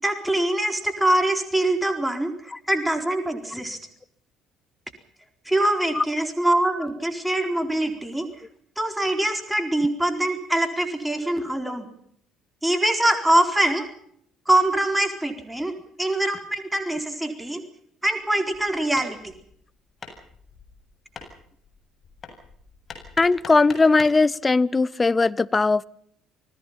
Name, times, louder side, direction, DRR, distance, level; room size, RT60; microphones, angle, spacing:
voice 1, 0.0-3.8 5.5-8.3 8.8-11.9 12.6-13.9 14.5-17.6 18.0-19.3, right 1 dB, 5° right, 4.2 m, -23 dB
Hammer, 18.2-24.3, left 4 dB, 40° left, 7.8 m, -44 dB
voice 2, 23.2-25.9, left 3 dB, 25° left, 0.9 m, -19 dB
28.5 x 19.5 x 5.7 m
figure-of-eight pair, 55°, 0 cm